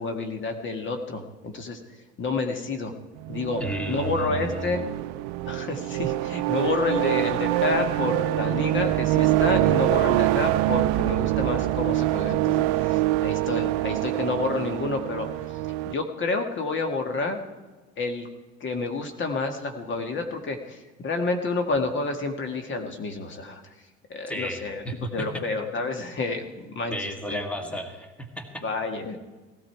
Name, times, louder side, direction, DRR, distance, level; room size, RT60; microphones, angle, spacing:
voice 1, 0.0-1.8 2.2-2.9 3.3-3.6 3.9-4.8 5.5-15.6 15.9-17.4 18.0-18.3 18.6-23.7 24.1-27.4 28.6-29.2, left 3 dB, 40° left, 5 dB, 1.9 m, -29 dB
sound 1, 3.2-15.9, right 16 dB, 80° right, 0.5 m, -25 dB
voice 2, 3.6-4.9 24.3-25.4 26.9-28.6, right 1 dB, 5° left, 5 dB, 1.7 m, -33 dB
18.0 x 13.0 x 4.6 m, 1.3 s
supercardioid pair, 95°, 29 cm